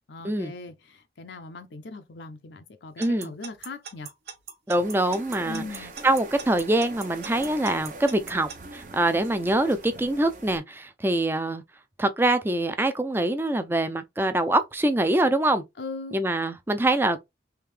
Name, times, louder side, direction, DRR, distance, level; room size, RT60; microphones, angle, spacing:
voice 1, 0.1-4.1 5.4-5.9 15.8-16.2, left 3 dB, 80° left, 0.6 m, -39 dB
voice 2, 3.0-3.3 4.7-5.7 6.0-11.6 12.0-15.6 16.1-17.2, right 1 dB, 10° right, 0.4 m, -24 dB
Alarm / Clock, 3.0-8.6, right 6 dB, 70° right, 1.3 m, -39 dB
sound 1, 4.7-10.6, right 2 dB, 45° right, 0.7 m, -43 dB
3.5 x 2.7 x 3.2 m
head